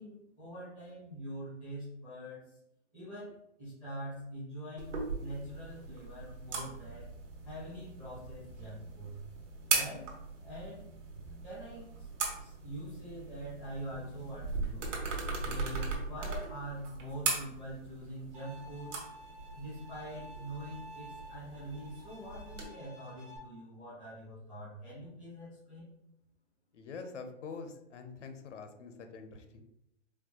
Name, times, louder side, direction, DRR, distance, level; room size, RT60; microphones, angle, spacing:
voice 1, 0.0-2.6 2.9-7.1 7.4-9.2 9.7-10.1 10.4-10.8 11.4-12.1 12.4-14.9 15.4-19.0 19.5-25.9, right 1 dB, 5° right, -12 dB, 0.5 m, -44 dB
sound 1, 4.8-22.6, right 4 dB, 80° right, 1.2 m, -39 dB
Bowed string instrument, 18.3-23.4, equal, 45° right, 1.1 m, -52 dB
voice 2, 26.7-29.6, left 5 dB, 75° left, 7 dB, 0.7 m, -45 dB
4.4 x 2.2 x 2.9 m, 0.78 s
hypercardioid pair, 170°, 36 cm